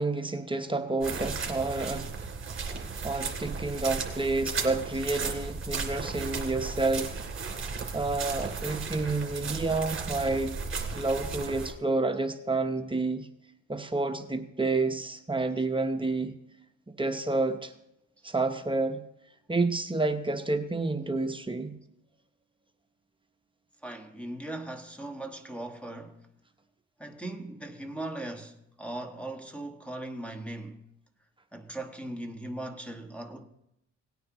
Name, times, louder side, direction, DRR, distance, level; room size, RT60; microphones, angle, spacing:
voice 1, 0.0-2.0 3.0-7.2 7.9-10.6 10.9-13.3 13.7-16.3 17.0-17.7 18.2-19.0 19.5-21.8, right 3 dB, 15° right, 0.9 m, -29 dB
sound 1, 1.0-11.7, right 5 dB, 40° right, 2.9 m, -35 dB
voice 2, 23.8-26.3 27.0-30.8 31.5-33.4, right 1 dB, 5° left, 1.3 m, -39 dB
18.0 x 9.3 x 3.0 m
cardioid pair, 90°, 30 cm